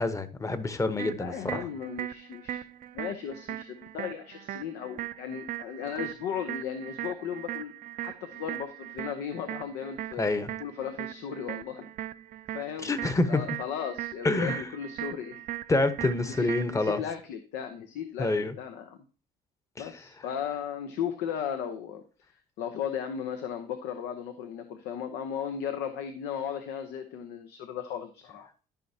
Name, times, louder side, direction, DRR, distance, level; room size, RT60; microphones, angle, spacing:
voice 1, 0.0-1.6 10.2-10.5 12.8-13.4 14.2-14.6 15.7-17.0 18.2-18.5 19.8-19.9, left 2 dB, 20° left, 12 dB, 0.9 m, -27 dB
sound 1, 1.0-17.0, right 13 dB, 55° right, 0.5 m, -39 dB
voice 2, 1.2-2.6 2.9-7.7 8.0-10.3 10.6-11.9 12.5-12.9 13.3-15.4 16.3-19.0 19.8-28.5, left 8 dB, 90° left, 8 dB, 0.8 m, -36 dB
13.0 x 5.7 x 2.8 m, 0.35 s
cardioid pair, 110°, 17 cm